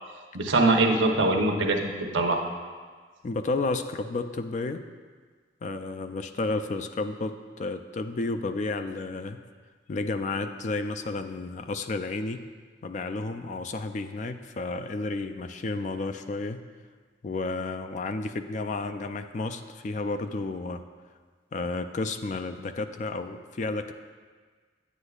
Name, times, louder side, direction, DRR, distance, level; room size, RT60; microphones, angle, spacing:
voice 1, 0.3-2.4, right 2 dB, 85° right, 2 dB, 0.8 m, -23 dB
voice 2, 3.2-4.8 5.6-9.4 9.9-12.4 12.8-16.6 17.2-20.8 21.5-23.9, left 3 dB, 40° left, 8 dB, 0.3 m, -32 dB
9.7 x 8.1 x 2.4 m, 1.5 s
head